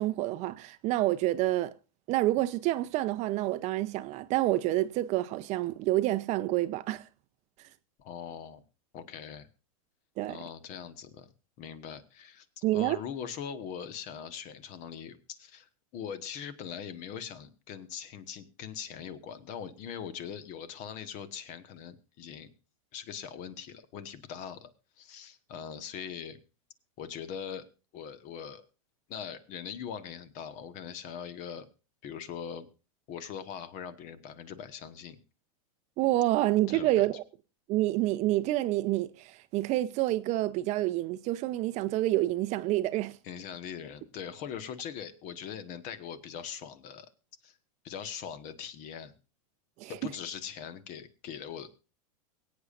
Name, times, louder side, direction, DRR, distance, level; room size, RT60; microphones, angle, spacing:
voice 1, 0.0-1.7 2.1-7.0 10.2-10.4 12.6-13.0 36.0-37.2 37.7-43.2 49.8-50.0, right 16 dB, 40° right, 0.7 m, -28 dB
voice 2, 8.0-8.6 8.9-9.5 10.3-11.3 11.6-22.5 22.9-24.7 25.0-26.4 27.0-27.7 27.9-28.6 29.1-31.7 32.0-32.7 33.1-35.2 36.7-37.0 43.2-47.1 47.4-47.6 47.8-49.1 49.9-51.7, left 8 dB, 40° left, 1.4 m, -41 dB
23.5 x 8.6 x 2.5 m
hypercardioid pair, 125°, 19 cm